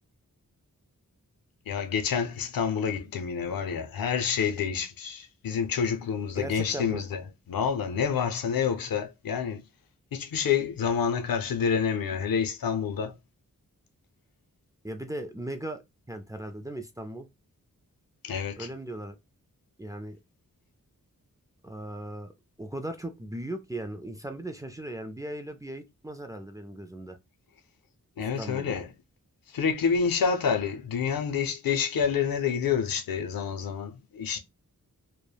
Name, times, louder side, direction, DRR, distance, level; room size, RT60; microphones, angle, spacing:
voice 1, 1.7-7.2 7.5-9.6 10.1-13.1 18.2-18.7 28.2-28.9 29.5-34.4, left 6 dB, 85° left, 0.5 m, -28 dB
voice 2, 6.4-7.0 14.8-15.8 16.1-17.3 18.6-19.2 19.8-20.2 21.6-22.3 22.6-27.2 28.2-28.7, right 1 dB, 10° right, 0.3 m, -37 dB
3.1 x 2.1 x 2.2 m
wide cardioid pair, 70°, 34 cm